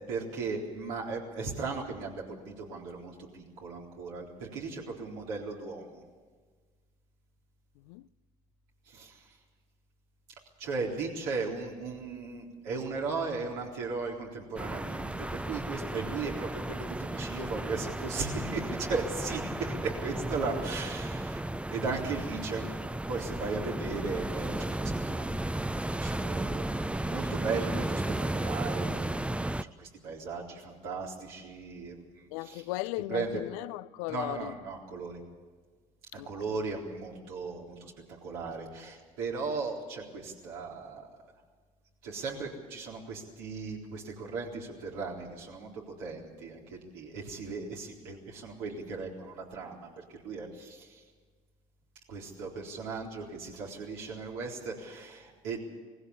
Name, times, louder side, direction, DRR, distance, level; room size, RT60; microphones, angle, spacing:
voice 1, 0.0-6.0 8.9-9.4 10.6-21.4 21.7-22.7 23.1-25.3 25.9-29.3 29.6-32.6 33.1-33.3 34.1-35.2 36.1-37.9 38.2-41.1 42.0-51.0 52.1-55.6, right 4 dB, 80° right, 4.0 m, -37 dB
voice 2, 7.8-8.1 32.3-34.5 36.2-36.3, left 19 dB, 80° left, 0.5 m, -36 dB
sound 1, 14.6-29.6, right 1 dB, 5° right, 0.6 m, -34 dB
19.5 x 16.0 x 8.5 m
hypercardioid pair, 60°, 19 cm